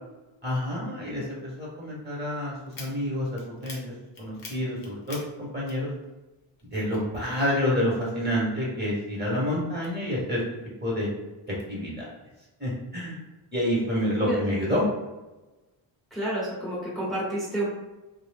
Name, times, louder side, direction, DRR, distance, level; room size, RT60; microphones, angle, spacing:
voice 1, 0.4-3.8 4.2-5.9 6.7-10.4 10.8-11.1 11.7-12.1 12.6-13.2 13.5-14.8, equal, 20° right, -6 dB, 1.1 m, -28 dB
sound 1, 2.7-6.3 6.6-7.9 8.3-10.4 10.9-11.7, left 3 dB, 45° left, 0.7 m, -47 dB
voice 2, 14.2-14.6 16.1-17.7, right 1 dB, ahead, -8 dB, 1.0 m, -29 dB
2.6 x 2.0 x 3.3 m, 1.1 s
wide cardioid pair, 90°, 49 cm